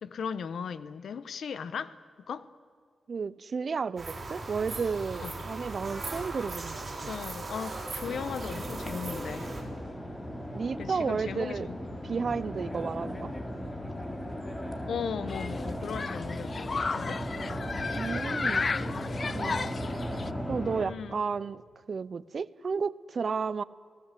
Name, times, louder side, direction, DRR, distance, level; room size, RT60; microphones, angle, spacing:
voice 1, 0.0-2.0 2.3-2.5 5.2-5.3 7.0-9.5 10.8-11.8 14.9-17.2 20.7-21.2, left 6 dB, 75° left, 1.2 m, -37 dB
voice 2, 3.1-7.1 10.5-11.7 12.0-13.3 17.9-18.7 19.2-19.7 20.5-23.6, right 5 dB, 50° right, 0.8 m, -33 dB
sound 1, 4.0-9.6, right 3 dB, 35° right, 8.0 m, -38 dB
sound 2, 8.0-20.8, equal, 15° left, 3.3 m, -37 dB
Human group actions, 15.3-20.3, left 4 dB, 45° left, 0.7 m, -34 dB
28.5 x 19.0 x 8.4 m
cardioid pair, 90°, 0 cm